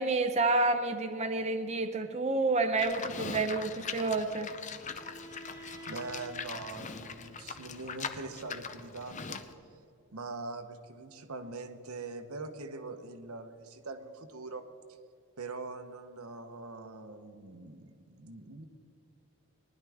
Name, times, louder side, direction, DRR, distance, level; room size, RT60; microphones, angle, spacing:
voice 1, 0.0-4.5, right 3 dB, 30° right, 6 dB, 0.6 m, -29 dB
Livestock farm animals working animals, 2.8-9.5, left 5 dB, 35° left, 0.6 m, -41 dB
Bowed string instrument, 4.9-8.8, right 1 dB, 50° left, 2.2 m, -52 dB
voice 2, 5.9-9.4 10.1-14.6 15.4-18.7, right 3 dB, 85° right, 7 dB, 1.0 m, -43 dB
19.0 x 10.5 x 3.5 m, 2.6 s
head